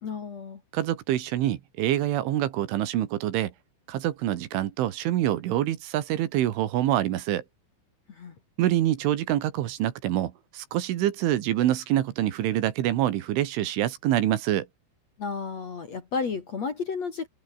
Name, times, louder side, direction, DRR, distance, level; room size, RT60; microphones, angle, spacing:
voice 1, 0.0-0.6 8.1-8.3 15.2-17.3, left 5 dB, 45° left, 2.6 m, -32 dB
voice 2, 0.7-3.5 3.9-7.4 8.6-14.7, right 13 dB, 75° right, 4.0 m, -26 dB
open air
omnidirectional pair, 5.8 m